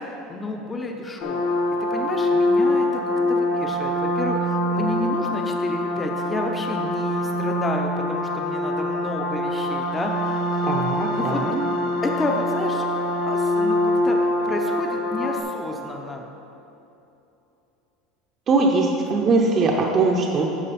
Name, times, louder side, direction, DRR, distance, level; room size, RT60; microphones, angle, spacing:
voice 1, 0.3-1.6 1.9-2.9 3.3-10.5 11.1-11.4 12.0-12.8 13.2-14.2 14.4-16.2, left 2 dB, 15° left, 2 dB, 0.7 m, -30 dB
sound 1, 1.2-15.4, left 1 dB, 80° left, 1.8 m, -24 dB
voice 2, 10.6-11.6 18.5-20.5, right 3 dB, 35° right, 0 dB, 0.8 m, -21 dB
11.0 x 6.6 x 4.3 m, 2.9 s
supercardioid pair, 135°, 0 cm